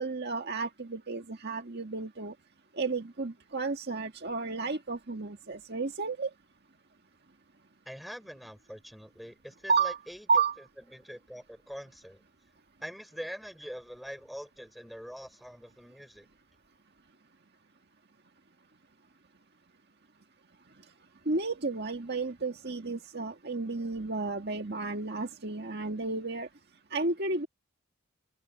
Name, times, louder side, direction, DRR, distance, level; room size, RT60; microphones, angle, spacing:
voice 1, 0.0-2.3 2.7-6.3 9.7-10.0 10.3-10.6 21.3-26.5 26.9-27.5, right 4 dB, 50° right, 1.8 m, -32 dB
voice 2, 7.8-10.3 10.9-12.2 12.8-16.3, equal, ahead, 4.7 m, -44 dB
head